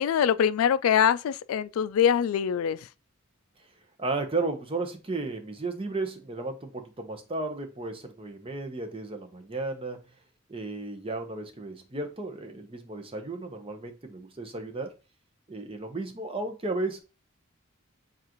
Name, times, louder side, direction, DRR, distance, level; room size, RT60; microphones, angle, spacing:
voice 1, 0.0-2.8, left 8 dB, 85° left, 0.3 m, -23 dB
voice 2, 4.0-10.0 10.5-14.9 15.5-17.0, right 3 dB, 25° right, 0.7 m, -34 dB
7.2 x 2.5 x 2.9 m
head